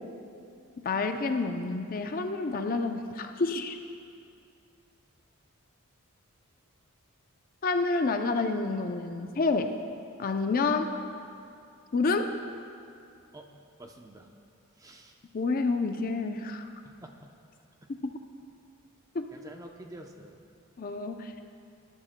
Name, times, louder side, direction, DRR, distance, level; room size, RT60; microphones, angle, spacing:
voice 1, 0.8-3.8 7.6-9.7 10.2-10.9 11.9-12.3 15.3-16.7 18.0-18.1 19.1-19.3 20.8-21.3, left 3 dB, 40° left, 6 dB, 0.5 m, -28 dB
voice 2, 13.8-14.3 14.8-15.2 16.8-17.1 17.8-17.9 19.3-20.4, right 1 dB, 15° right, 3 dB, 0.6 m, -48 dB
19.5 x 10.5 x 2.2 m, 2.4 s
head